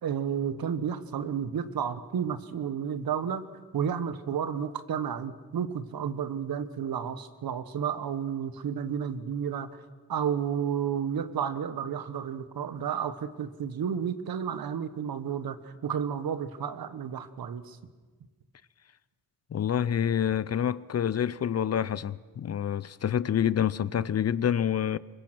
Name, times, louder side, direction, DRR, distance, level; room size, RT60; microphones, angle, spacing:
voice 1, 0.0-3.4 3.7-9.7 10.1-17.8, right 8 dB, 75° right, 1.3 m, -31 dB
voice 2, 19.5-25.0, left 9 dB, 45° left, 0.6 m, -27 dB
24.0 x 22.0 x 6.1 m
cardioid pair, 105°, 37 cm